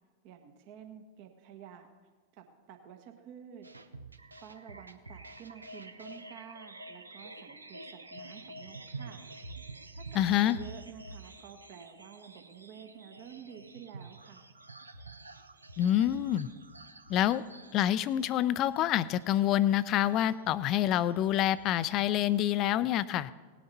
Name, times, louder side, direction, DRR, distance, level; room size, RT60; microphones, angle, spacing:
voice 1, 0.2-1.9 2.3-3.7 4.4-9.3 9.9-14.4, right 8 dB, 45° right, 5 dB, 1.3 m, -50 dB
sound 1, 3.6-22.4, right 2 dB, 80° right, 0.8 m, -49 dB
voice 2, 10.1-10.6 15.8-16.5 17.1-17.4 17.7-23.3, left 12 dB, 35° left, 17 dB, 0.5 m, -27 dB
18.0 x 10.0 x 4.2 m, 1.4 s
figure-of-eight pair, 90°, 0 cm